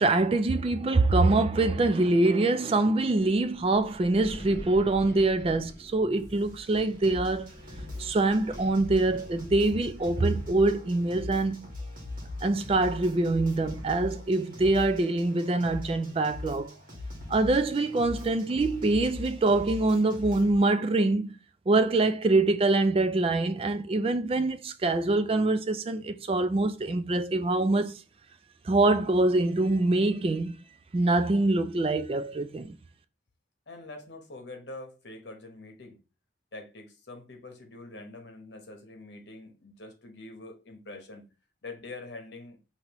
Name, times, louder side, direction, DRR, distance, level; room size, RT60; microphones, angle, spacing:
voice 1, 0.0-7.5 8.0-11.7 12.4-16.7 17.3-21.4 21.7-28.0 28.6-30.6 30.9-32.7, right 2 dB, 30° right, 0.3 m, -24 dB
Wind, 3.2-10.5, equal, 20° left, 2.7 m, -47 dB
sound 1, 6.2-20.5, left 2 dB, 45° right, 1.6 m, -41 dB
voice 2, 33.7-36.0 36.5-41.2 41.6-42.6, left 2 dB, 65° left, 1.1 m, -44 dB
5.2 x 2.9 x 3.0 m
head